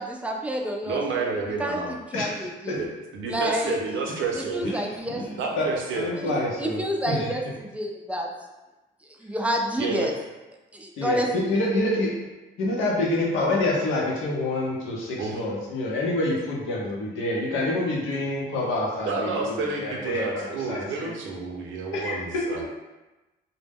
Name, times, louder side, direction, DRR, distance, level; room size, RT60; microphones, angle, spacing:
voice 1, 0.0-1.3 1.6-2.9 3.3-3.8 4.3-5.3 6.2-8.3 9.0-10.1 10.7-11.6, right 1 dB, 5° right, 1 dB, 0.3 m, -29 dB
voice 2, 0.9-2.0 2.7-2.9 3.1-4.8 5.4-6.1 9.8-10.1 15.2-15.4 19.0-22.6, right 4 dB, 75° right, 0 dB, 0.6 m, -30 dB
voice 3, 4.6-6.8 7.1-7.3 11.0-12.1 12.6-21.1 21.9-22.5, left 2 dB, 85° left, -3 dB, 0.7 m, -27 dB
2.1 x 2.0 x 3.4 m, 1.1 s
cardioid pair, 90°, 20 cm